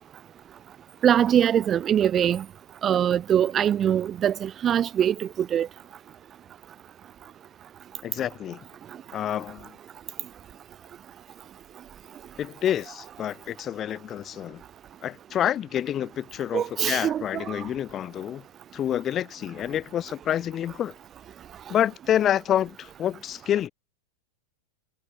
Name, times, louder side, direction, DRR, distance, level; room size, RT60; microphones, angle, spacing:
voice 1, 1.0-2.4 2.8-5.7 16.5-17.5, right 9 dB, 30° right, 0.8 m, -23 dB
voice 2, 8.0-8.6 9.1-9.7 12.4-14.6 15.0-18.4 18.7-20.9 21.7-23.7, left 10 dB, 30° left, 6.6 m, -28 dB
figure-of-eight pair, 95°, 0 cm